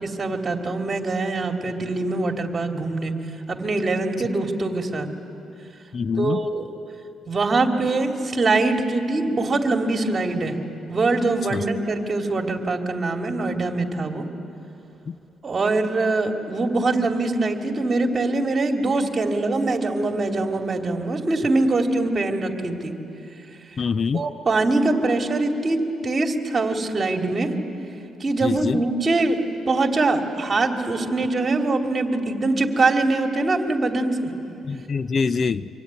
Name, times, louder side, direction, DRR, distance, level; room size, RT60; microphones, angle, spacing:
voice 1, 0.0-3.1 3.5-5.1 6.2-6.7 7.3-10.6 10.9-14.3 15.4-22.9 24.1-27.5 28.2-29.4 29.7-34.3, right 2 dB, 35° right, 3 dB, 2.8 m, -23 dB
voice 2, 5.9-6.4 11.5-11.6 15.1-15.2 23.8-24.2 28.4-28.8 34.7-35.7, left 5 dB, 45° left, 14 dB, 0.6 m, -24 dB
25.0 x 25.0 x 9.7 m, 2.8 s
cardioid pair, 90°, 0 cm